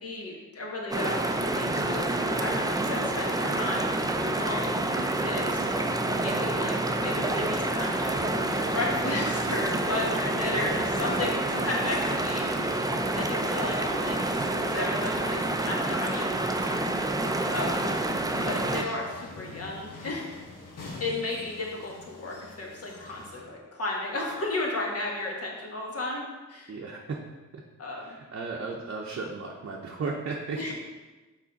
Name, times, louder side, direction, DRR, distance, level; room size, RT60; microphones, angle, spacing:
voice 1, 0.0-3.9 4.2-5.8 6.2-12.8 13.1-17.1 17.5-17.9 18.5-20.3 21.0-26.7 27.8-28.2 30.6-30.7, left 2 dB, 50° left, -2 dB, 1.5 m, -34 dB
sound 1, 0.9-18.8, right 2 dB, 10° right, 0.4 m, -28 dB
sound 2, 8.5-23.4, left 2 dB, 90° left, 1.2 m, -47 dB
voice 2, 26.7-27.2 27.5-27.6 27.9-30.7, right 4 dB, 50° right, -1 dB, 0.7 m, -35 dB
6.0 x 4.1 x 4.0 m, 1.2 s
wide cardioid pair, 95°, 31 cm